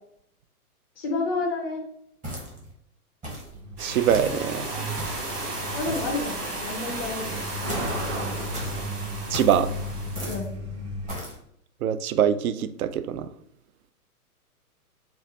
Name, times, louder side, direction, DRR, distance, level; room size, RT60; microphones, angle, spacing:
voice 1, 1.0-1.8 5.7-7.4 10.2-10.5, left 3 dB, 10° left, -4 dB, 0.4 m, -30 dB
sound 1, 2.2-2.7 3.2-3.5 4.1-4.4 5.0-5.3 5.8-6.2 7.7-8.0 8.5-8.8 9.3-9.6 10.2-10.5 11.1-11.4, right 1 dB, 15° right, 0.9 m, -36 dB
Truck, 3.5-11.1, equal, 45° right, 1.4 m, -35 dB
voice 2, 3.8-4.7 9.3-9.7 11.8-13.3, right 9 dB, 70° right, 12 dB, 0.5 m, -23 dB
sound 2, 3.8-10.4, right 2 dB, 90° right, 1.3 m, -34 dB
3.9 x 2.3 x 3.9 m, 0.70 s
hypercardioid pair, 135°, 45 cm